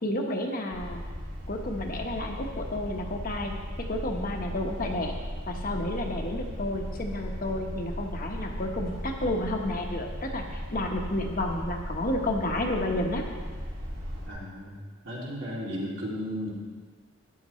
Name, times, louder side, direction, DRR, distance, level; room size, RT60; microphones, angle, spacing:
voice 1, 0.0-1.0 1.5-3.5 3.9-5.2 5.5-13.2, left 1 dB, 45° left, 2 dB, 1.2 m, -31 dB
sound 1, 0.7-14.3, equal, 85° right, 3.3 m, -37 dB
voice 2, 14.2-16.5, equal, 65° right, -5 dB, 2.8 m, -35 dB
13.0 x 10.5 x 3.2 m, 1.5 s
head